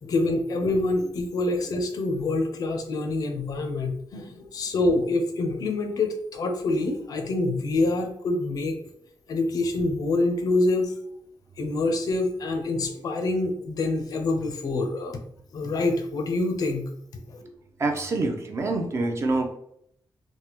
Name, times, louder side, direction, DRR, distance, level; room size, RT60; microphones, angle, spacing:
voice 1, 0.0-8.8 9.3-10.9 11.6-15.2 15.5-16.9 17.3-17.4, left 2 dB, 50° left, 5 dB, 0.5 m, -26 dB
voice 2, 17.8-19.6, right 2 dB, 35° right, 3 dB, 0.4 m, -26 dB
3.3 x 2.1 x 2.9 m, 0.70 s
wide cardioid pair, 170°, 8 cm